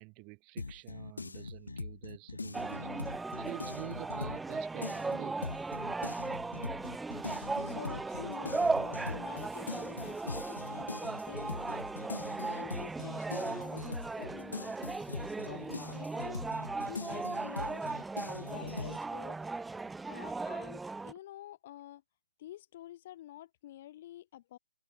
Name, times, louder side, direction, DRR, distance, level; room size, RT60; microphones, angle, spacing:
voice 1, 0.0-5.6, right 33 dB, 25° right, 3.5 m, -48 dB
sound 1, 0.6-4.5 4.8-19.0, left 3 dB, 70° left, 1.7 m, -42 dB
sound 2, 2.5-21.1, right 3 dB, 5° right, 1.2 m, -37 dB
voice 2, 7.6-15.0 15.3-17.9 18.3-19.4 20.1-22.0 22.4-24.6, left 13 dB, 40° left, 7.0 m, -49 dB
figure-of-eight pair, 130°, 0 cm